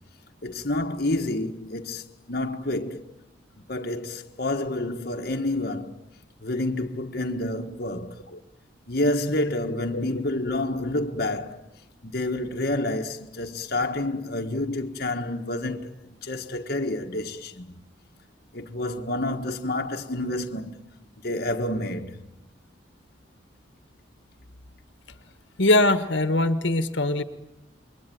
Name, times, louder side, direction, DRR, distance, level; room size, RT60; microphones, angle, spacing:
voice 1, 0.4-3.1 3.7-6.0 6.4-8.2 8.9-11.6 12.0-15.9 16.2-17.8 18.5-20.8 21.2-22.3, left 1 dB, 50° left, 1.4 m, -29 dB
voice 2, 25.6-27.2, left 2 dB, 70° left, 1.5 m, -21 dB
28.0 x 23.0 x 9.2 m
head